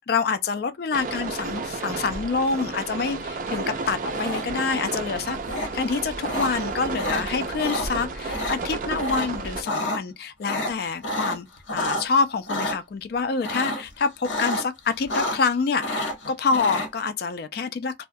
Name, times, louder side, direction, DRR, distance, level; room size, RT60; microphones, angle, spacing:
voice 1, 0.1-5.4 5.7-18.1, left 4 dB, 55° left, 0.3 m, -26 dB
sound 1, 0.9-9.6, right 3 dB, 45° right, 0.4 m, -32 dB
sound 2, 4.1-4.7 5.5-5.7 6.2-6.5 6.9-7.2 7.6-7.9 8.2-8.6 9.0-9.3 9.5-10.0 10.4-12.0 12.5-12.7 13.4-13.9 14.2-14.7 14.9-15.5 15.8-16.9, left 1 dB, 80° left, 0.9 m, -29 dB
2.3 x 2.1 x 2.5 m
head